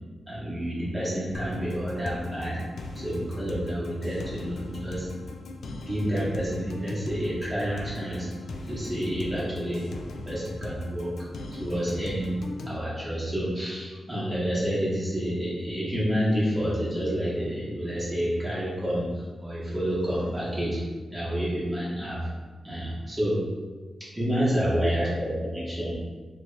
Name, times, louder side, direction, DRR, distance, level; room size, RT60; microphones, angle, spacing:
voice 1, 0.3-2.6 2.9-5.1 5.8-8.3 8.7-9.8 10.1-11.1 11.6-12.4 12.7-20.8 21.1-22.3 22.6-23.4 24.1-25.9, equal, 15° right, -9 dB, 1.0 m, -29 dB
sound 1, 1.3-12.8, left 2 dB, 70° left, 0.3 m, -39 dB
2.8 x 2.8 x 3.2 m, 1.4 s
wide cardioid pair, 125°, 0 cm